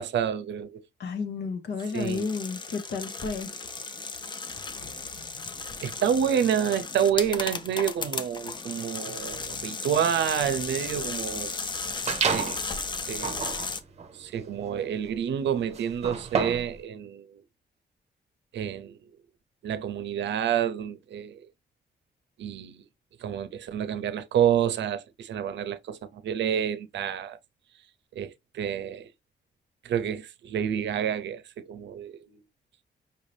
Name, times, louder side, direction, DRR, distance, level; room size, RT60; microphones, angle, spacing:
voice 1, 0.0-0.8 1.9-2.3 5.8-11.5 12.3-12.6 13.1-13.4 14.1-17.4 18.5-19.1 19.6-21.4 22.4-22.9 23.2-27.4 28.1-29.1 29.8-32.4, right 9 dB, 85° right, 0.6 m, -28 dB
voice 2, 1.0-3.5, left 5 dB, 70° left, 1.0 m, -32 dB
sound 1, 1.8-13.8, left 4 dB, 25° left, 0.5 m, -35 dB
sound 2, 12.1-12.7 13.1-16.8, right 6 dB, 35° right, 0.7 m, -30 dB
5.5 x 2.7 x 3.2 m
wide cardioid pair, 175°, 18 cm